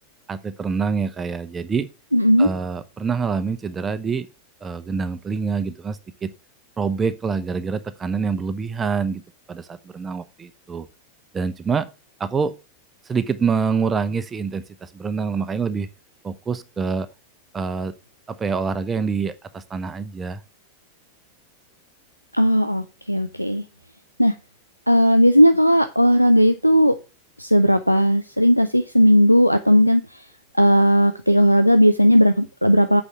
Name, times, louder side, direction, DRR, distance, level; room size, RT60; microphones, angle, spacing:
voice 1, 0.3-1.9 2.4-4.3 4.6-6.3 6.8-9.2 9.5-10.9 11.3-11.9 12.2-12.5 13.1-15.9 16.2-17.1 17.5-17.9 18.3-20.4, right 5 dB, 20° right, 0.7 m, -26 dB
voice 2, 2.1-2.5 22.3-23.6 24.2-24.3 24.9-26.9 27.4-30.0 30.6-33.0, equal, 90° left, 0.6 m, -16 dB
8.2 x 5.3 x 6.7 m
figure-of-eight pair, 90°, 0 cm